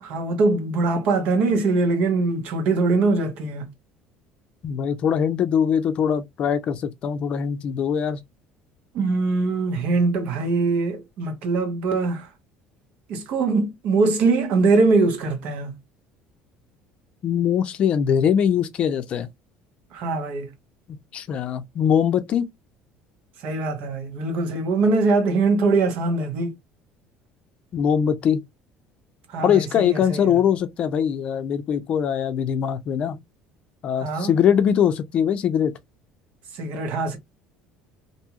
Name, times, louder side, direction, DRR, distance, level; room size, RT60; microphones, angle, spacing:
voice 1, 0.0-3.7 8.9-12.3 13.1-15.8 19.9-20.5 23.4-26.5 29.3-30.4 34.0-34.3 36.5-37.2, right 3 dB, 65° right, 1.0 m, -22 dB
voice 2, 4.6-8.2 17.2-19.3 21.1-22.5 27.7-28.4 29.4-33.2 33.8-35.7, left 8 dB, 45° left, 0.5 m, -22 dB
2.6 x 2.3 x 2.9 m
cardioid pair, 125°, 3 cm